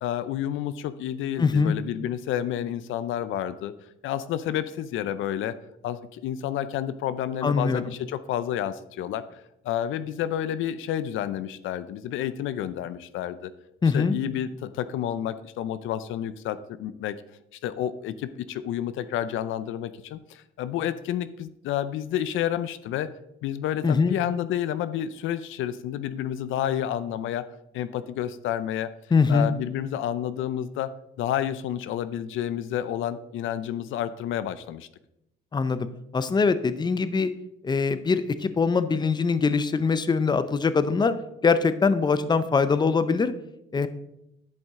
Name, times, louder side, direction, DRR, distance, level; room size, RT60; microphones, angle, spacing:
voice 1, 0.0-3.7 4.0-5.6 5.8-13.5 13.8-17.2 17.6-23.1 23.4-27.5 27.7-28.9 29.3-30.9 31.2-34.9, left 11 dB, 85° left, 14 dB, 0.5 m, -30 dB
voice 2, 1.4-1.7 7.4-7.8 13.8-14.2 23.8-24.2 29.1-29.5 35.5-35.9 36.1-37.3 37.6-41.1 41.4-43.3 43.7-43.9, left 5 dB, 20° left, 13 dB, 0.5 m, -22 dB
10.5 x 5.2 x 3.6 m, 0.83 s
cardioid pair, 90°, 20 cm